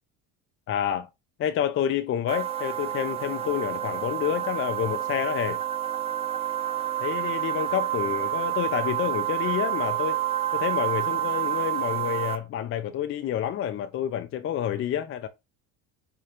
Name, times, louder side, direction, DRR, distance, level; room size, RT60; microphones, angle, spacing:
voice 1, 0.7-1.1 1.4-5.6 7.0-10.2 10.5-15.3, left 10 dB, 35° left, 0.4 m, -28 dB
sound 1, 2.3-12.4, right 12 dB, 15° right, 0.8 m, -29 dB
5.1 x 2.3 x 2.9 m
supercardioid pair, 85°, 38 cm